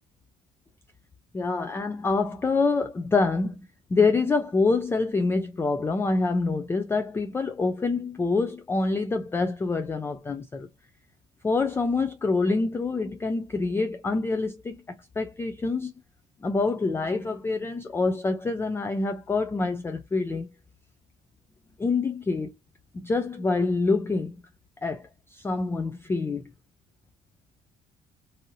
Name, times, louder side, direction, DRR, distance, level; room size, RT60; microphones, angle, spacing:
voice 1, 1.3-3.6 3.9-10.7 11.4-14.8 15.2-15.9 16.4-20.5 21.8-22.5 22.9-24.3 24.8-25.0 25.3-26.4, left 3 dB, 15° left, 0.3 m, -26 dB
2.7 x 2.6 x 2.6 m
cardioid pair, 110°, 17 cm